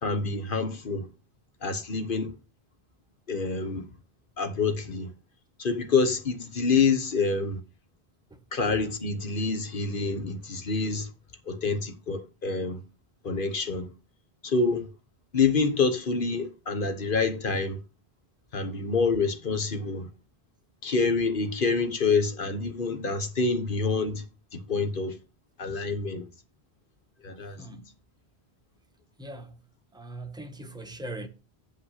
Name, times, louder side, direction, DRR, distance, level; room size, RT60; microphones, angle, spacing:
voice 1, 0.0-1.1 1.6-2.3 3.3-3.9 4.4-5.1 5.6-7.6 8.5-11.1 11.5-12.8 13.2-13.9 14.4-14.9 15.3-17.8 18.5-20.1 20.8-24.2 24.5-25.2 25.6-26.3 27.2-27.8, left 4 dB, 55° left, 1.2 m, -27 dB
voice 2, 27.6-27.9 29.2-29.6 29.9-31.3, right 2 dB, 5° right, 0.9 m, -40 dB
7.9 x 5.4 x 5.7 m
omnidirectional pair, 1.1 m